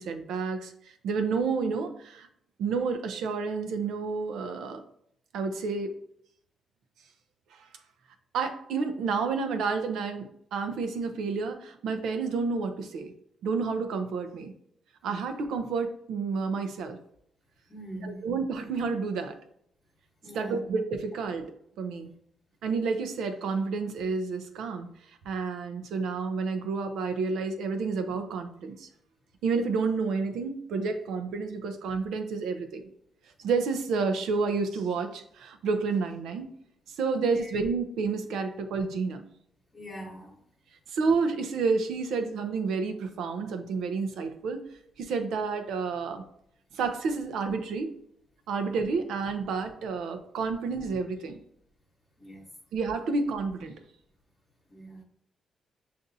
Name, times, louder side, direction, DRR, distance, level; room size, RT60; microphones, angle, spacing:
voice 1, 0.0-2.3 2.6-4.8 5.3-6.0 7.5-7.7 8.3-13.1 13.4-14.5 15.0-17.0 18.0-19.4 20.3-22.1 22.6-24.9 25.2-28.9 29.4-32.8 33.4-36.5 36.9-39.3 40.9-44.7 45.0-46.2 46.7-47.9 48.5-51.4 52.7-53.7, right 4 dB, 85° right, 0.5 m, -30 dB
voice 2, 17.7-18.2 20.2-20.6 37.3-37.6 39.7-40.4 52.2-52.5 54.7-55.0, right 1 dB, 30° left, 1.0 m, -42 dB
6.6 x 2.5 x 2.6 m
cardioid pair, 65°, 0 cm